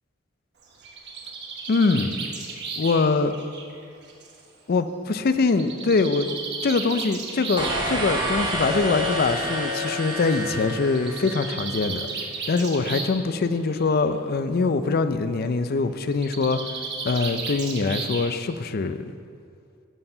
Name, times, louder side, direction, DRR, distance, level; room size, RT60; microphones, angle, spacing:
Bird, 0.6-4.4 5.5-7.8 8.9-9.0 9.4-9.5 9.7-9.8 10.8-13.3 13.6-14.0 16.1-18.5, right 4 dB, 55° right, 1.3 m, -34 dB
voice 1, 1.7-2.2 2.8-3.3 4.7-6.3 6.6-12.1 12.5-16.6 17.0-19.0, left 4 dB, 45° left, 11 dB, 0.4 m, -23 dB
sound 1, 7.6-11.8, equal, 20° right, 1.4 m, -28 dB
11.0 x 4.7 x 6.5 m, 2.3 s
head